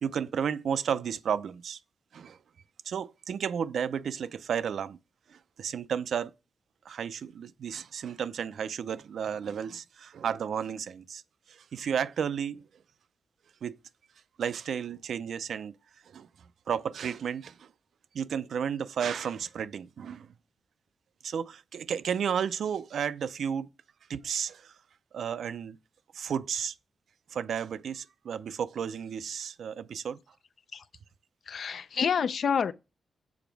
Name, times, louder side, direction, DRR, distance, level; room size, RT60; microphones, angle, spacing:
voice 1, 0.0-1.8 2.1-2.4 2.9-5.0 5.3-6.3 6.9-11.2 11.5-12.6 13.6-13.8 14.4-15.7 16.1-16.3 16.7-17.7 18.1-20.3 21.2-23.7 24.1-24.7 25.1-25.8 26.1-26.7 27.3-30.2, right 7 dB, 80° right, 0.4 m, -32 dB
voice 2, 31.5-32.7, left 7 dB, 65° left, 0.4 m, -28 dB
7.1 x 4.9 x 4.6 m
wide cardioid pair, 110°, 0 cm